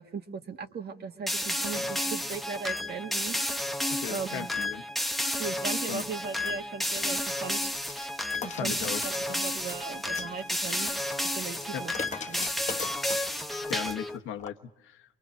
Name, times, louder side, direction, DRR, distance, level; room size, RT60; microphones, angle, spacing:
voice 1, 0.0-3.7 4.1-4.6 5.4-7.7 8.4-8.8 9.0-10.9 11.4-11.9 12.3-12.5, right 5 dB, 55° right, 6 dB, 1.8 m, -38 dB
sound 1, 1.3-14.2, left 1 dB, ahead, 0.8 m, -31 dB
voice 2, 3.9-4.8 5.9-6.0 8.4-9.0 11.7-11.8 13.7-15.2, left 9 dB, 85° left, 6 dB, 1.1 m, -37 dB
sound 2, 6.8-14.0 14.4-14.5, left 5 dB, 35° left, 1.2 m, -42 dB
28.0 x 23.0 x 6.4 m, 1.0 s
cardioid pair, 90°, 20 cm